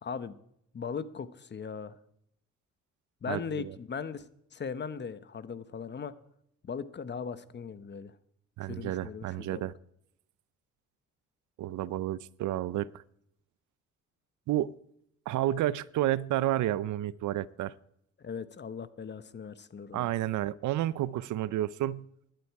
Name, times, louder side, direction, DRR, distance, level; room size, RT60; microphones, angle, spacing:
voice 1, 0.0-0.4 0.7-2.0 3.2-6.1 6.6-8.1 8.7-9.7 18.2-20.1, left 6 dB, 35° left, 1.0 m, -39 dB
voice 2, 3.3-3.7 8.6-9.7 11.6-13.0 14.5-14.7 15.3-17.7 19.9-22.1, right 13 dB, 75° right, 0.6 m, -31 dB
15.5 x 11.5 x 4.7 m
cardioid pair, 90°, 30 cm